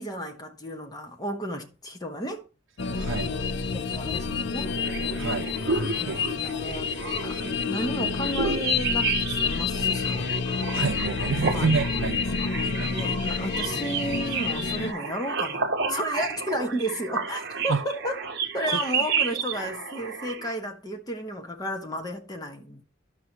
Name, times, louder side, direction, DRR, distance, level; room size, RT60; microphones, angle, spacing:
voice 1, 0.0-2.4 2.9-4.7 6.0-7.0 7.2-10.3 11.5-11.8 12.9-18.2 18.5-22.8, equal, 20° left, 1.1 m, -33 dB
sound 1, 2.8-14.9, left 5 dB, 60° left, 0.5 m, -29 dB
voice 2, 3.0-3.4 5.2-5.5 6.1-6.2 10.7-12.2 12.6-12.9 17.7-17.8, right 4 dB, 75° right, 0.6 m, -27 dB
sound 2, 4.6-20.5, right 5 dB, 55° right, 0.9 m, -32 dB
12.5 x 5.7 x 2.9 m
head